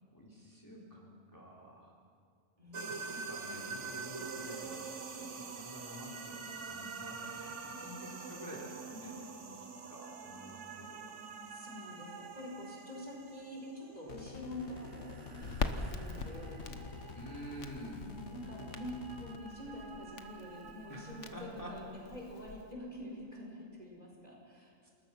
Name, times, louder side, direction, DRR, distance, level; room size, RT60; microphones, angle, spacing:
voice 1, 0.1-1.9 2.9-11.2 17.2-18.0 20.9-22.1 24.8-24.9, equal, 15° left, -3 dB, 3.9 m, -49 dB
voice 2, 2.6-3.0 8.2-9.1 11.2-17.1 18.0-24.9, left 1 dB, 35° right, -2 dB, 5.0 m, -47 dB
sound 1, 2.7-21.4, right 4 dB, 85° right, 1.7 m, -46 dB
sound 2, 14.1-19.4, left 6 dB, 70° left, 1.4 m, -49 dB
Crackle, 15.4-22.7, left 4 dB, 90° left, 1.5 m, -43 dB
28.0 x 20.0 x 6.0 m, 2.4 s
omnidirectional pair, 1.2 m